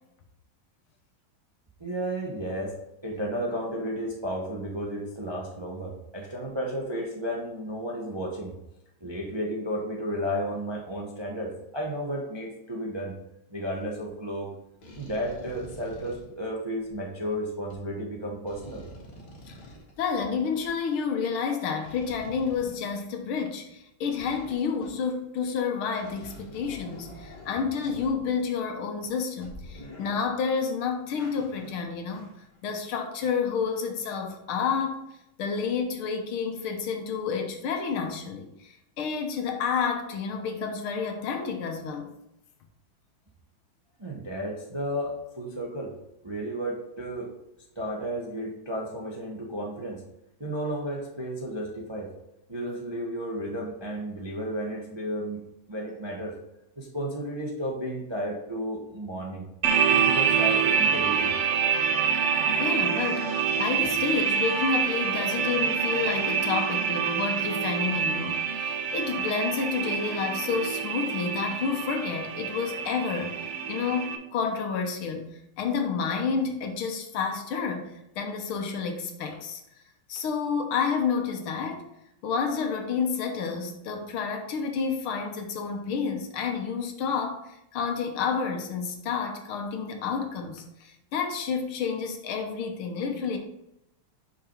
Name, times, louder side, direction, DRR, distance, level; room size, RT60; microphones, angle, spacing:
voice 1, 1.8-2.7 3.0-8.5 9.0-13.1 13.5-14.5 15.0-18.9 44.0-45.9 46.2-47.3 47.7-50.0 50.4-52.1 52.5-56.3 56.8-59.4 59.9-61.3, equal, 25° right, -2 dB, 0.6 m, -33 dB
sound 1, 13.7-14.0 14.8-17.3 17.7-17.8 18.5-20.7 21.8-23.4 24.1-25.2 25.5-25.6 25.9-28.7 29.0-29.1 29.4-30.7 31.2-32.6 32.9-33.0, left 1 dB, 55° left, 2.0 m, -47 dB
voice 2, 20.0-32.3 32.6-35.0 35.4-42.1 62.6-79.6 80.1-81.9 82.2-93.4, left 6 dB, 80° left, 4 dB, 1.8 m, -30 dB
sound 2, 59.6-74.2, right 7 dB, 90° right, 0.6 m, -26 dB
6.0 x 5.6 x 4.5 m, 0.85 s
omnidirectional pair, 2.3 m